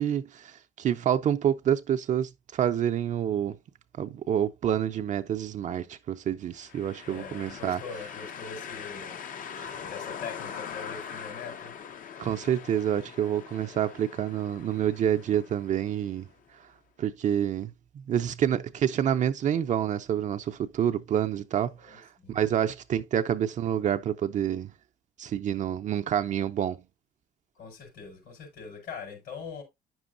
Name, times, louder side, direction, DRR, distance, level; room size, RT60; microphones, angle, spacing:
voice 1, 0.0-3.5 4.0-7.8 9.6-9.7 12.2-16.3 17.0-17.7 18.1-24.7 25.2-26.8, right 9 dB, 45° right, 0.5 m, -28 dB
sound 1, 6.6-16.4, left 7 dB, 50° left, 0.7 m, -42 dB
voice 2, 7.1-9.2 9.8-11.7 21.8-22.3 27.5-29.6, left 5 dB, 80° left, 4.9 m, -42 dB
9.3 x 6.2 x 2.5 m
cardioid pair, 110°, 17 cm